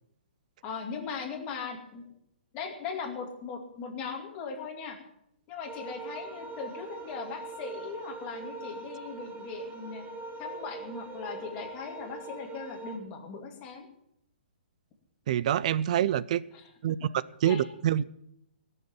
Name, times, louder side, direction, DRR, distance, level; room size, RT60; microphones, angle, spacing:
voice 1, 0.6-2.1 2.5-5.0 5.5-10.0 10.4-13.9 16.5-16.6 17.4-17.6, left 5 dB, 20° left, 1 dB, 2.4 m, -39 dB
sound 1, 5.7-13.0, right 3 dB, 25° right, 4.0 m, -42 dB
voice 2, 15.3-16.4 16.8-17.0 17.4-18.0, right 11 dB, 40° right, 19 dB, 0.5 m, -26 dB
17.0 x 6.8 x 9.0 m, 0.77 s
hypercardioid pair, 165°, 6 cm